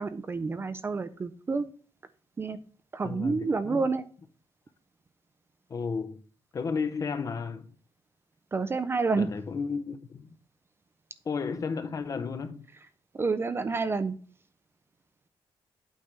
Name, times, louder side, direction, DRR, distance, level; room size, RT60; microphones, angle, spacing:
voice 1, 0.0-1.7 2.4-2.6 2.9-4.0 8.5-9.3 13.1-14.2, right 4 dB, 25° right, 0.3 m, -29 dB
voice 2, 3.0-3.8 5.7-6.2 6.5-7.7 9.1-10.4 11.2-12.7, left 5 dB, 35° left, 0.6 m, -33 dB
8.7 x 3.3 x 5.1 m
wide cardioid pair, 160°, 9 cm